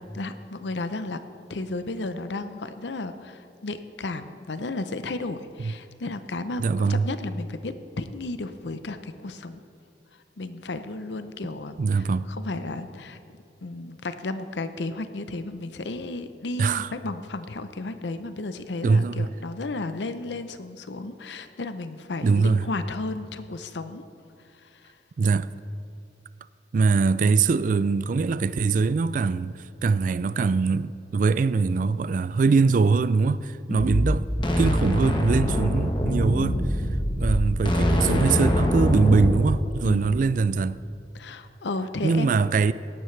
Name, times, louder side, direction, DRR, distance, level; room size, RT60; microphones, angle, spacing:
voice 1, 0.1-1.2 1.5-9.6 10.4-13.2 13.6-24.0 24.5-25.0 33.7-34.1 39.8-40.2 41.1-42.6, left 2 dB, 85° left, 0.7 m, -34 dB
voice 2, 6.6-7.1 11.8-12.2 16.6-16.9 18.8-19.3 22.2-22.6 25.2-25.5 26.7-34.3 34.6-36.6 37.2-40.8 42.0-42.7, right 4 dB, 50° right, 0.3 m, -22 dB
sound 1, 33.8-39.4, equal, 30° left, 1.2 m, -23 dB
17.0 x 12.5 x 3.3 m
head